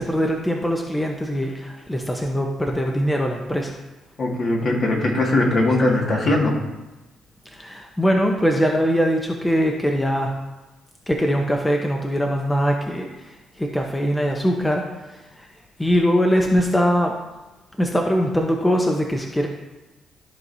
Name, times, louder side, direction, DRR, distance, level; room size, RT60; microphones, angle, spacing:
voice 1, 0.0-3.8 7.5-10.3 11.1-15.5 15.8-17.1 17.8-19.5, equal, 10° left, 1 dB, 0.8 m, -22 dB
voice 2, 4.2-6.6, left 2 dB, 50° left, -1 dB, 1.9 m, -20 dB
14.0 x 4.7 x 2.7 m, 1.1 s
cardioid pair, 90°, 0 cm